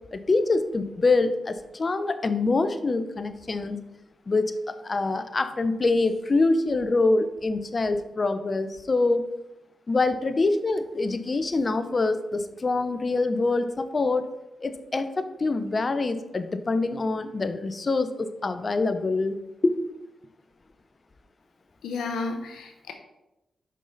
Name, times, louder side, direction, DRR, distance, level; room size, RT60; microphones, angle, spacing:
voice 1, 0.1-3.8 4.3-9.2 9.9-14.2 14.6-19.4 19.6-19.8, left 3 dB, 45° left, 10 dB, 0.7 m, -25 dB
voice 2, 21.8-22.9, left 3 dB, 80° left, 5 dB, 1.0 m, -32 dB
6.3 x 5.5 x 4.0 m, 0.93 s
supercardioid pair, 45°, 0 cm